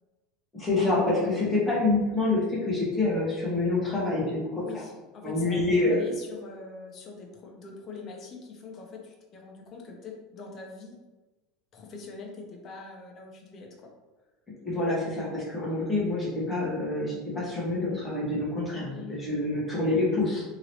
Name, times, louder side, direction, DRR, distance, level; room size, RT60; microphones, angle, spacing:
voice 1, 0.5-4.6 5.2-6.0 14.6-20.4, left 2 dB, 10° left, -7 dB, 1.0 m, -27 dB
voice 2, 4.6-5.6 5.9-11.0 11.7-13.9 15.6-15.9 18.9-19.4, left 4 dB, 30° left, 0 dB, 0.5 m, -43 dB
2.9 x 2.8 x 2.8 m, 1.2 s
supercardioid pair, 165°, 0 cm